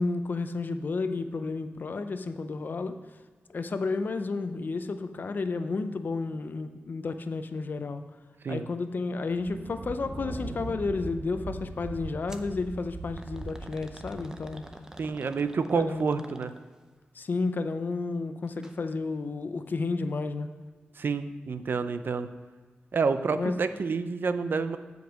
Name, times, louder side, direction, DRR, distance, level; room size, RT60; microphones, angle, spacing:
voice 1, 0.0-3.0 3.5-8.0 8.5-14.6 15.7-16.2 17.2-20.5 23.3-23.6, left 3 dB, 55° left, 9 dB, 0.5 m, -31 dB
Thunder, 9.3-15.9, right 2 dB, 40° right, 0.9 m, -41 dB
sound 1, 12.3-12.5 13.2-16.9 18.5-18.8 19.1-19.2 20.1-20.2, right 1 dB, 15° right, 0.6 m, -49 dB
voice 2, 15.0-16.5 21.0-22.3 22.9-24.8, right 5 dB, 60° right, 11 dB, 0.5 m, -28 dB
7.7 x 5.3 x 6.1 m, 1.5 s
wide cardioid pair, 95°, 4 cm